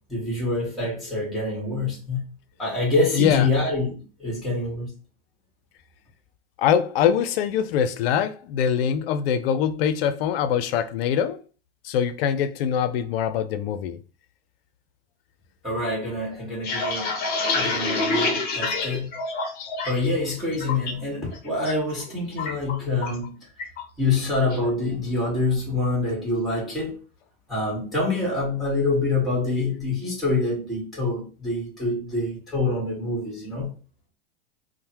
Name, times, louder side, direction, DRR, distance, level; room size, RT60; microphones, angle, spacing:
voice 1, 0.1-2.2 2.6-4.9 15.6-17.2 17.5-19.1 19.8-23.4 24.0-27.0 27.5-33.7, left 2 dB, ahead, 1.3 m, -26 dB
voice 2, 3.1-3.5 6.6-11.4 11.8-14.0, left 8 dB, 65° left, 0.5 m, -23 dB
sound 1, 16.4-20.1 20.4-20.9 21.3-21.7 22.0-23.3 23.6-23.8 24.2-24.6, left 3 dB, 30° left, 0.7 m, -27 dB
3.1 x 2.1 x 2.8 m
hypercardioid pair, 120°, 32 cm